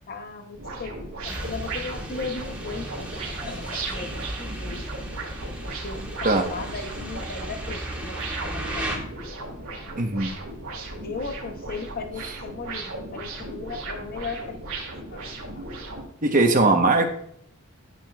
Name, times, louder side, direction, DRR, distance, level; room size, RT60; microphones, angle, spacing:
voice 1, 0.1-0.9 1.2-4.8 5.8-8.1 8.4-9.1 11.0-15.2 15.5-15.7, left 4 dB, 45° left, 6 dB, 0.8 m, -37 dB
sound 1, 0.5-16.0, right 2 dB, 70° right, 2.1 m, -36 dB
sound 2, 1.3-9.0, right 1 dB, 5° right, 1.6 m, -35 dB
voice 2, 10.0-10.3 16.2-17.1, right 2 dB, 40° right, 4 dB, 1.0 m, -20 dB
8.9 x 8.7 x 2.4 m, 0.67 s
head